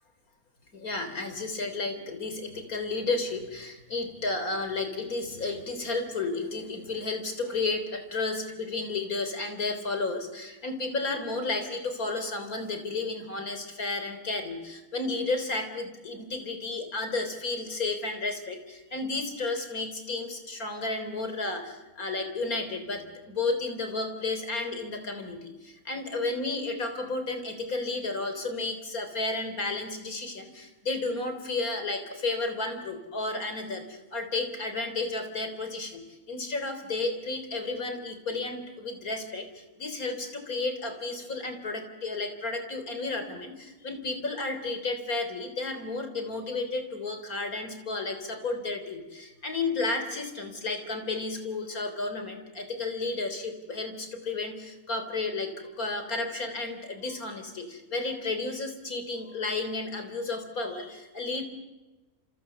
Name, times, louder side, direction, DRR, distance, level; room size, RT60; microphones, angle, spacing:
voice 1, 0.7-61.4, left 3 dB, 70° left, 7 dB, 4.1 m, -32 dB
29.0 x 28.5 x 7.0 m, 1.1 s
omnidirectional pair, 1.6 m